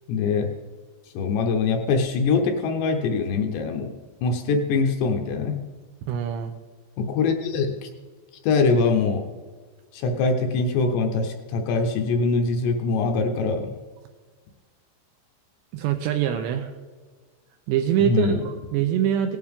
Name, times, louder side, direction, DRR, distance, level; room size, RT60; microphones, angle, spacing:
voice 1, 0.1-0.5 1.1-3.9 4.2-5.6 7.0-7.9 8.4-9.2 9.9-13.7 18.0-18.4, left 4 dB, 75° left, 3 dB, 2.8 m, -23 dB
voice 2, 6.1-6.5 15.7-16.7 17.7-19.4, right 9 dB, 80° right, 6 dB, 2.6 m, -24 dB
17.5 x 9.7 x 3.6 m, 1.4 s
omnidirectional pair, 5.5 m